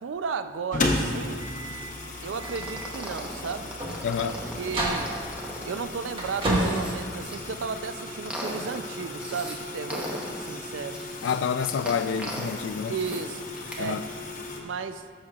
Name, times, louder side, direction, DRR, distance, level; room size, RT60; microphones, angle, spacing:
voice 1, 0.0-1.5 2.2-3.7 4.2-5.1 5.6-11.0 12.9-13.5 13.8-14.0 14.6-15.0, right 5 dB, 90° right, 0.4 m, -34 dB
sound 1, 0.7-14.6, left 2 dB, 45° left, 0.9 m, -35 dB
sound 2, 1.3-7.9, right 1 dB, 30° right, 1.4 m, -33 dB
sound 3, 2.4-7.4 7.8-9.6 9.9-13.2 13.6-13.8, equal, 5° right, 0.9 m, -38 dB
voice 2, 4.0-4.4 11.2-13.0 13.8-14.1, left 7 dB, 85° left, 0.3 m, -28 dB
14.0 x 6.5 x 2.4 m
head